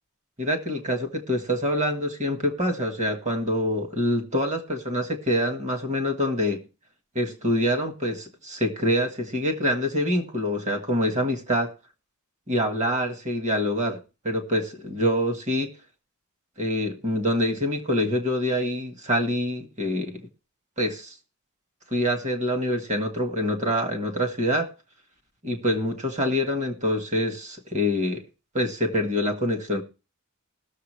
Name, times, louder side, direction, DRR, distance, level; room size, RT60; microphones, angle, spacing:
voice 1, 0.4-6.6 7.2-11.7 12.5-15.7 16.6-20.3 20.8-21.1 21.9-24.7 25.4-28.2 28.5-29.8, equal, 35° right, 1.7 m, -25 dB
20.0 x 7.0 x 3.2 m
head